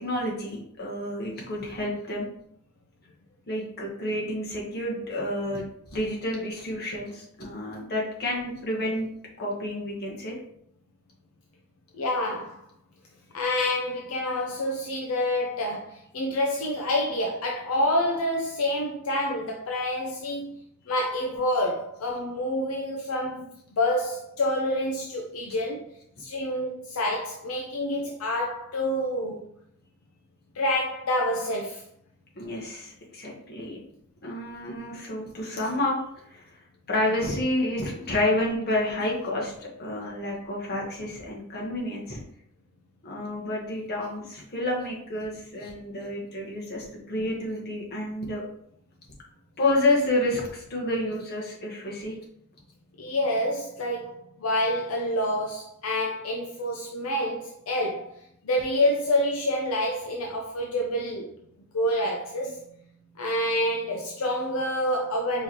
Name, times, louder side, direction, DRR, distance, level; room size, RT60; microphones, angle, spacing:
voice 1, 0.0-2.3 3.5-5.6 5.9-9.1 9.4-10.4 32.4-33.8 34.2-36.0 36.3-36.4 36.9-39.5 39.8-42.2 43.0-48.4 49.6-52.2, left 1 dB, 50° left, -2 dB, 1.2 m, -29 dB
voice 2, 11.9-12.6 13.3-20.6 20.9-23.5 23.7-25.8 26.2-29.5 30.5-31.8 53.0-61.3 61.7-62.6 63.2-65.4, left 1 dB, 70° left, 0 dB, 0.6 m, -27 dB
4.7 x 3.1 x 2.9 m, 0.70 s
head